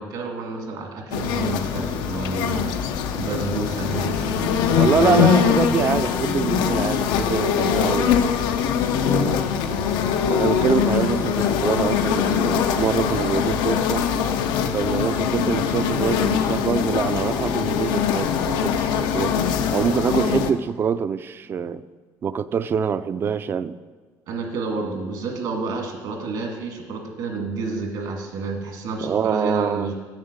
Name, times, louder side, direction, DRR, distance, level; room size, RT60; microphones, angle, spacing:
voice 1, 0.0-5.4 9.6-10.0 24.3-29.9, right 3 dB, 75° right, 2 dB, 1.9 m, -30 dB
sound 1, 1.1-20.5, left 8 dB, 90° left, 0.6 m, -22 dB
voice 2, 4.7-8.3 9.0-9.5 10.3-14.1 14.7-19.4 19.7-21.8 22.2-23.8 29.0-29.9, right 7 dB, 35° right, 15 dB, 0.3 m, -25 dB
7.4 x 7.0 x 6.6 m, 1.5 s
cardioid pair, 135°, 7 cm